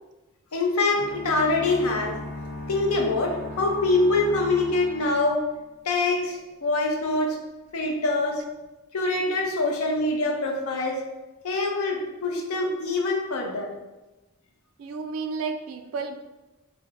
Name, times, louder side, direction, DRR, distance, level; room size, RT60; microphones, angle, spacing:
voice 1, 0.5-2.2 2.7-5.5 5.8-7.4 7.7-8.4 8.9-11.0 11.4-13.7, left 2 dB, 85° left, 1 dB, 0.6 m, -24 dB
sound 1, 0.9-5.9, left 1 dB, 5° right, 0.7 m, -38 dB
voice 2, 14.8-16.1, right 4 dB, 75° right, 7 dB, 0.3 m, -31 dB
3.4 x 2.0 x 3.2 m, 1.1 s
head